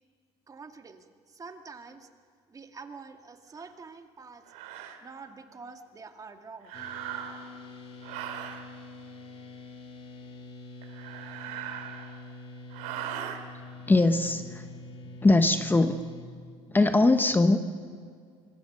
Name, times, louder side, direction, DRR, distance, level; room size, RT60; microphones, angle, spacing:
voice 1, 0.5-2.1 2.5-4.5 5.0-6.8, right 4 dB, 30° right, 6 dB, 2.2 m, -46 dB
sound 1, 3.6-3.7 4.5-5.0 6.6-7.6 8.0-8.6 10.8-12.3 12.7-13.4, right 10 dB, 85° right, 2.6 m, -39 dB
sound 2, 6.7-16.2, left 2 dB, 55° left, 3.2 m, -45 dB
voice 2, 13.9-14.7 15.2-16.0 16.7-17.6, left 2 dB, 15° left, 8 dB, 1.1 m, -21 dB
26.0 x 23.0 x 6.8 m, 2.1 s
supercardioid pair, 95°, 12 cm